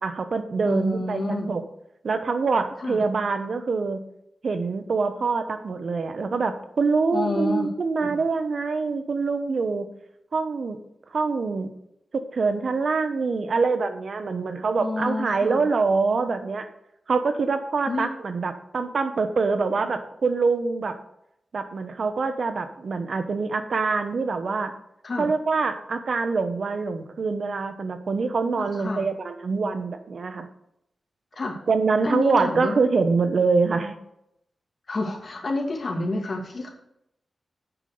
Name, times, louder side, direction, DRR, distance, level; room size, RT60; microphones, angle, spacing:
voice 1, 0.0-1.6 2.0-4.0 4.4-9.9 10.3-10.8 11.1-11.7 12.1-16.7 17.1-20.9 21.5-24.7 25.2-30.5 31.7-34.0, right 4 dB, 60° right, 8 dB, 1.1 m, -25 dB
voice 2, 0.6-1.5 2.8-3.0 7.1-7.7 8.0-8.2 14.8-15.6 17.9-18.1 25.0-25.3 28.6-29.1 31.3-31.6 32.0-32.8 34.9-36.7, left 2 dB, 50° left, 1 dB, 2.5 m, -29 dB
9.0 x 5.9 x 6.7 m, 0.78 s
wide cardioid pair, 110°, 0 cm